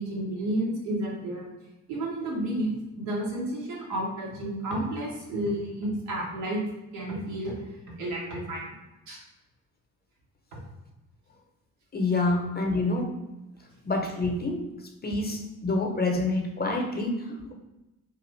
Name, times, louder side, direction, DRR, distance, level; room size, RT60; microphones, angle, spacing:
voice 1, 0.0-1.5 1.9-2.7 3.0-6.6 6.9-7.6 8.0-8.8 9.1-9.2 10.5-10.6, right 1 dB, 85° right, -2 dB, 0.8 m, -31 dB
voice 2, 11.9-13.1 13.8-14.6 15.0-17.5, left 2 dB, 20° left, 2 dB, 0.6 m, -27 dB
2.5 x 2.4 x 3.1 m, 1.0 s
hypercardioid pair, 40°, 45 cm